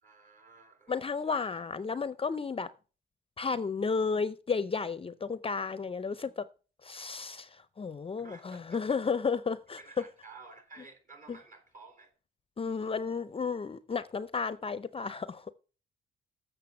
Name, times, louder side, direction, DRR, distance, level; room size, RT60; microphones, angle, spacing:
voice 1, 0.0-1.4 8.2-9.0 9.8-12.1, right 4 dB, 40° right, 3.7 m, -53 dB
voice 2, 0.9-2.7 3.4-6.5 6.8-9.8 11.3-11.4 12.6-15.5, left 5 dB, 30° left, 0.5 m, -33 dB
7.6 x 6.8 x 6.9 m
cardioid pair, 90°, 20 cm